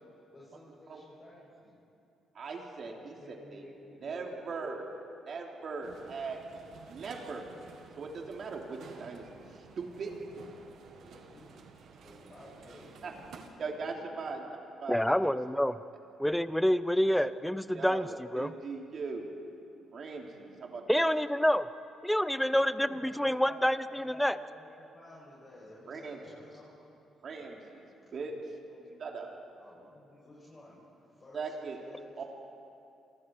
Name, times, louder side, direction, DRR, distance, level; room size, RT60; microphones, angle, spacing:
voice 1, 0.0-1.8 2.8-4.6 11.0-11.6 12.0-14.3 22.6-23.6 23.9-27.4 28.0-28.3 28.6-29.2 29.6-32.3, left 1 dB, 30° left, -7 dB, 7.9 m, -54 dB
voice 2, 2.4-3.1 3.5-3.6 4.0-4.9 5.3-6.4 6.9-7.5 8.0-10.1 13.0-13.1 13.6-14.4 14.8-15.2 17.7-19.3 19.9-21.1 25.9-26.2 27.2-27.8 28.1-28.3 29.0-29.3 31.3-31.8 32.2-32.3, right 4 dB, 55° right, 1 dB, 3.4 m, -39 dB
sound 1, 5.8-13.5, right 5 dB, 70° right, 2.1 m, -53 dB
voice 3, 14.9-15.8 16.2-18.5 20.9-21.7 22.0-24.3, equal, 5° left, 14 dB, 0.7 m, -27 dB
29.5 x 24.0 x 4.8 m, 2.7 s
cardioid pair, 90°, 0 cm